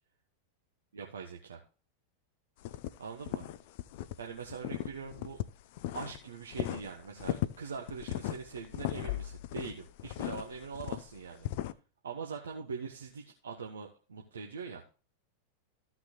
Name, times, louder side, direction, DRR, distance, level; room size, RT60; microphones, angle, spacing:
voice 1, 0.9-1.6 3.0-3.5 4.2-5.4 5.9-11.5 12.0-14.8, right 5 dB, 70° right, 1 dB, 1.2 m, -42 dB
sound 1, 2.6-4.1 4.4-6.2 6.5-11.7, left 14 dB, 50° left, 0.5 m, -37 dB
14.5 x 6.0 x 3.0 m, 0.35 s
figure-of-eight pair, 90°, 0 cm